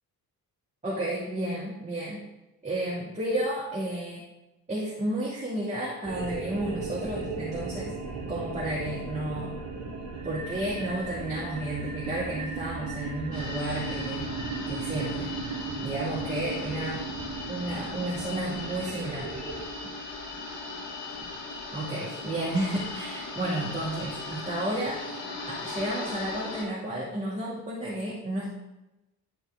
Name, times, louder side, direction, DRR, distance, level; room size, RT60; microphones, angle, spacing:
voice 1, 0.8-2.2 2.6-4.2 4.7-7.9 8.3-9.5 10.2-14.3 14.7-15.3 15.8-17.0 17.5-19.3 19.8-19.9 21.7-25.0 25.5-28.5, right 1 dB, 15° right, -6 dB, 2.5 m, -32 dB
sound 1, 6.0-19.6, right 4 dB, 55° right, 2.2 m, -36 dB
sound 2, 13.3-26.6, left 3 dB, 50° left, 2.2 m, -38 dB
12.0 x 4.4 x 3.8 m, 0.96 s
figure-of-eight pair, 40°, 49 cm